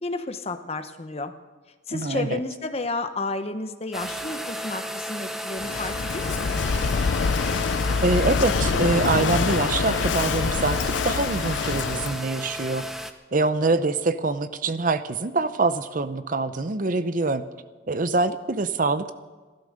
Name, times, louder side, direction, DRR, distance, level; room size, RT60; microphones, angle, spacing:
voice 1, 0.0-1.3 1.9-6.6, left 3 dB, 30° left, 9 dB, 0.9 m, -31 dB
voice 2, 1.9-2.4 8.0-10.8 11.0-12.9 13.3-17.4 17.9-19.1, right 3 dB, 45° right, 12 dB, 0.6 m, -24 dB
sound 1, 3.9-13.1, equal, ahead, 0.8 m, -34 dB
Walk footsteps / Wind / Waves surf, 5.6-12.2, left 5 dB, 70° left, 0.5 m, -25 dB
15.0 x 13.0 x 6.5 m, 1.3 s
head